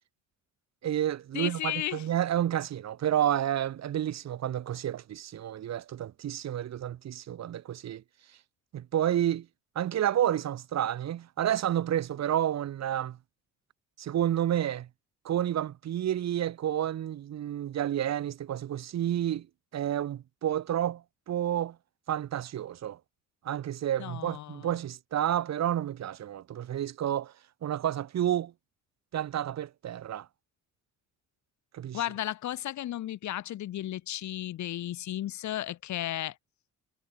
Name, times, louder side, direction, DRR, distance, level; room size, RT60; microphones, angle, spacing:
voice 1, 0.8-8.0 8.7-9.5 9.7-13.2 14.0-14.9 15.2-19.5 19.7-21.8 22.1-23.0 23.4-27.3 27.6-28.5 29.1-30.3 31.7-32.0, right 11 dB, 60° right, 1.4 m, -30 dB
voice 2, 1.3-2.0 24.0-24.7 31.9-36.3, left 13 dB, 70° left, 1.2 m, -34 dB
cardioid pair, 90°, 30 cm